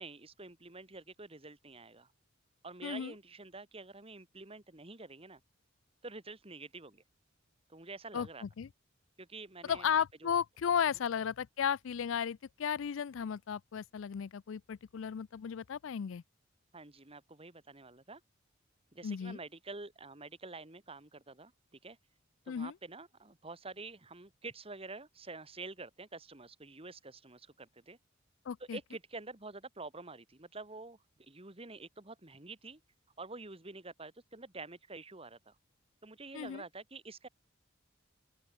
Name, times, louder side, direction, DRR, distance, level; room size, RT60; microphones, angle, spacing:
voice 1, 0.0-2.1 2.6-5.4 6.0-7.0 7.7-8.4 9.2-10.3 16.7-18.2 18.9-22.0 22.5-28.0 28.6-32.8 33.2-35.6 36.0-37.3, right 3 dB, 30° right, 2.2 m, -48 dB
voice 2, 2.8-3.1 8.1-8.7 9.7-16.2 19.0-19.4 22.5-22.7 28.5-28.8 36.3-36.6, left 7 dB, 75° left, 0.4 m, -34 dB
open air
head